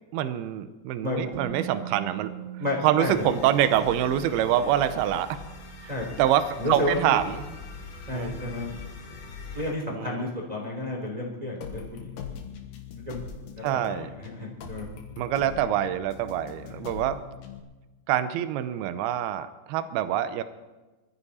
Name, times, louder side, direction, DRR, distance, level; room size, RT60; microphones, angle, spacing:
voice 1, 0.1-2.4 2.8-5.5 6.2-7.5 8.1-8.4 9.9-10.3 13.6-14.1 15.2-17.2 18.1-20.4, right 11 dB, 85° right, 12 dB, 2.2 m, -25 dB
Musical instrument, 1.3-9.2 9.5-9.7, right 12 dB, 70° right, 3.3 m, -43 dB
voice 2, 2.6-3.3 5.9-6.0 6.6-7.2 8.1-8.7 9.5-12.3 13.0-13.2 13.5-14.9 16.6-17.0, left 1 dB, 10° right, -2 dB, 2.7 m, -32 dB
sound 1, 3.0-9.7, left 5 dB, 80° left, 5.1 m, -43 dB
sound 2, 11.6-17.6, left 8 dB, 60° left, 2.5 m, -41 dB
22.5 x 13.5 x 4.2 m, 1.2 s
omnidirectional pair, 5.4 m